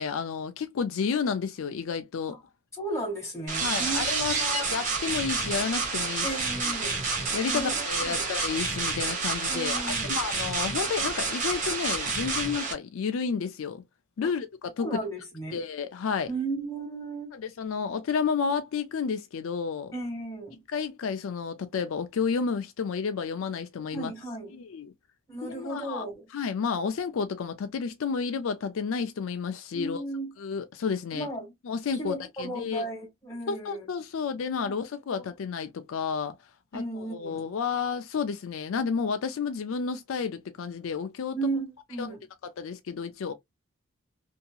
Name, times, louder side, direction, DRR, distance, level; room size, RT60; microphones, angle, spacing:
voice 1, 0.0-2.4 3.6-6.3 6.6-6.7 7.3-9.8 10.1-13.8 14.2-15.0 15.5-16.3 17.3-19.9 20.7-24.1 24.5-24.9 25.4-26.0 26.3-30.0 30.4-31.3 31.6-32.8 33.5-36.4 36.7-41.4 42.0-42.2 42.4-43.3, left 6 dB, 75° left, 0.4 m, -31 dB
voice 2, 2.8-4.6 6.2-7.0 7.4-8.3 9.5-10.1 14.8-15.6 16.3-17.4 19.9-20.6 23.9-24.6 25.3-26.3 29.7-30.3 31.1-31.5 32.0-33.9 34.6-34.7 36.7-37.4 41.3-42.2, right 2 dB, 15° left, 1.5 m, -35 dB
sound 1, 3.5-12.7, right 4 dB, 40° right, 0.9 m, -29 dB
2.7 x 2.7 x 2.2 m
head